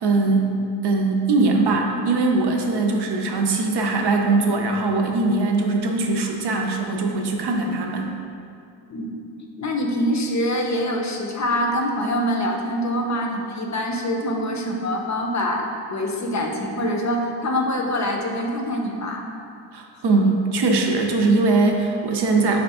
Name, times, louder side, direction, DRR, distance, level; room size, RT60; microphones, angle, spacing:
voice 1, 0.0-0.5 0.8-8.1 19.7-22.6, right 3 dB, 65° right, 2 dB, 0.6 m, -21 dB
voice 2, 9.6-19.2, equal, 40° left, 1 dB, 0.6 m, -25 dB
4.3 x 2.4 x 3.5 m, 2.5 s
cardioid pair, 55°, 43 cm